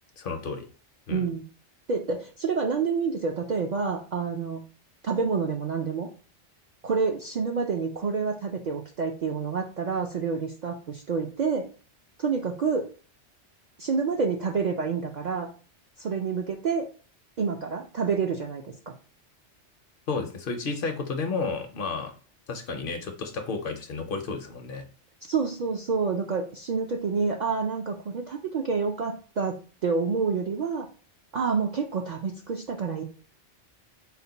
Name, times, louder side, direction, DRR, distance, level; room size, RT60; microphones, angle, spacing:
voice 1, 0.2-0.7 1.1-1.3 20.1-22.1 22.5-24.9, left 4 dB, 60° left, 6 dB, 0.7 m, -32 dB
voice 2, 1.1-1.4 1.9-4.6 5.0-6.1 6.8-11.6 12.2-12.9 13.8-15.5 16.0-16.9 17.4-18.9 25.2-30.9 31.3-33.0, right 5 dB, 60° right, 1 dB, 0.4 m, -28 dB
4.2 x 2.1 x 3.9 m, 0.37 s
omnidirectional pair, 1.2 m